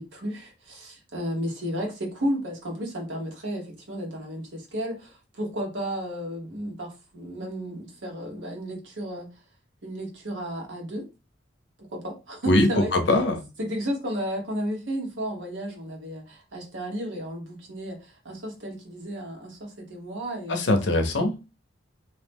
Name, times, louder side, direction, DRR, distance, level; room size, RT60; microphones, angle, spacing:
voice 1, 0.0-9.3 9.8-11.0 11.9-12.9 13.6-21.3, equal, 90° right, 1.1 m, -33 dB
voice 2, 12.5-13.4 20.5-21.4, left 1 dB, 70° left, 0.6 m, -22 dB
2.8 x 2.1 x 3.4 m
head